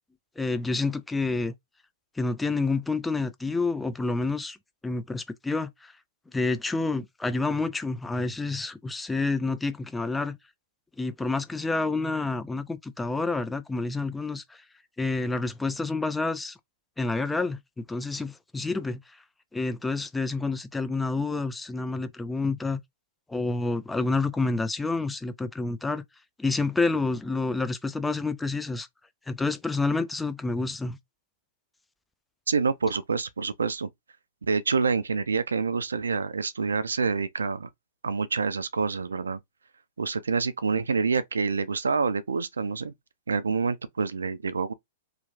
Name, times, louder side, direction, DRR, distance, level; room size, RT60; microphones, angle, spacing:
voice 1, 0.4-1.5 2.2-4.6 4.8-5.9 6.3-10.4 11.0-14.4 15.0-16.6 17.0-19.0 19.5-22.8 23.3-26.0 26.4-28.9 29.3-31.0, left 3 dB, 10° left, 0.4 m, -28 dB
voice 2, 32.5-33.9 34.4-37.7 38.0-39.4 40.0-42.9 43.3-44.7, right 4 dB, 80° right, 0.4 m, -27 dB
2.9 x 2.4 x 2.6 m
figure-of-eight pair, 110°, 0 cm